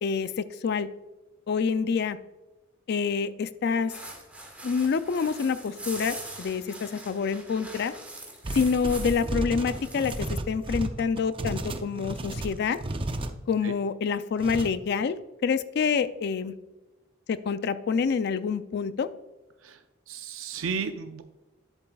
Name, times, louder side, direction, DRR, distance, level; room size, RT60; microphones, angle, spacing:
voice 1, 0.0-0.9 1.5-2.2 2.9-3.9 4.6-7.9 8.5-12.8 13.5-15.2 15.4-16.5 17.3-19.1, left 5 dB, 55° left, 13 dB, 0.4 m, -27 dB
sound 1, 3.9-9.3 9.6-10.3, right 2 dB, 5° right, 1.7 m, -42 dB
sound 2, 8.4-13.3 14.4-14.7, right 1 dB, 25° right, 0.6 m, -33 dB
voice 2, 20.1-21.2, right 5 dB, 80° right, 8 dB, 0.6 m, -33 dB
10.5 x 8.0 x 2.3 m, 1.1 s
head